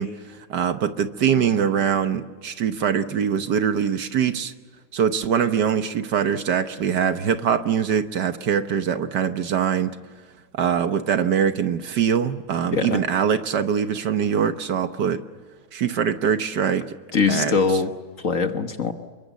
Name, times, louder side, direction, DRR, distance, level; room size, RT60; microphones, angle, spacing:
voice 1, 0.0-4.5 4.9-10.0 10.5-15.2 15.7-16.9 17.3-17.5, right 8 dB, 65° right, 9 dB, 1.6 m, -23 dB
voice 2, 12.7-13.1 17.1-18.9, left 5 dB, 45° left, 7 dB, 1.5 m, -22 dB
28.0 x 23.5 x 7.1 m, 1.5 s
omnidirectional pair, 2.1 m